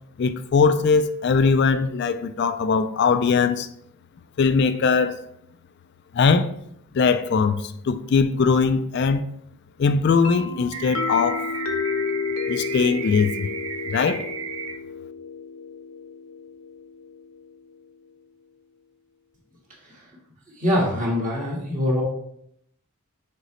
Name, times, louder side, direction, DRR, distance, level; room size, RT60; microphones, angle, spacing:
voice 1, 0.2-3.7 4.4-5.2 6.1-6.5 6.9-9.2 9.8-11.4 12.5-13.5 13.9-14.3, left 5 dB, 50° left, 0.3 m, -20 dB
sound 1, 10.2-17.9, left 5 dB, 70° left, 0.7 m, -32 dB
sound 2, 10.7-14.7, right 7 dB, 80° right, 0.8 m, -34 dB
voice 2, 20.6-22.0, left 1 dB, 35° right, 1.7 m, -24 dB
6.4 x 5.1 x 3.1 m
head